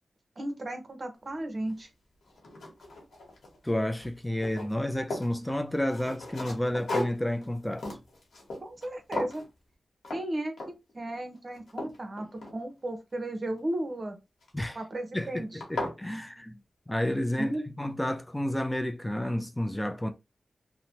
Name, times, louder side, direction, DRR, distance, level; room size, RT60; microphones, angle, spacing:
voice 1, 0.4-1.9 8.6-9.4 10.1-10.5 10.9-14.2 14.7-15.6 17.4-17.6, right 1 dB, 50° right, 0.9 m, -34 dB
sound 1, 1.7-1.8 2.3-3.7 4.0-5.4 5.9-8.9 9.1-9.5 10.0-10.3 10.6-10.9 11.4-12.9 14.4-14.8 15.3-15.4 15.6-16.0, left 2 dB, 90° left, 1.0 m, -37 dB
voice 2, 3.6-7.9 14.5-14.8 15.1-16.6 16.9-20.1, left 1 dB, 10° left, 0.4 m, -31 dB
2.8 x 2.1 x 2.8 m
cardioid pair, 55°, 0 cm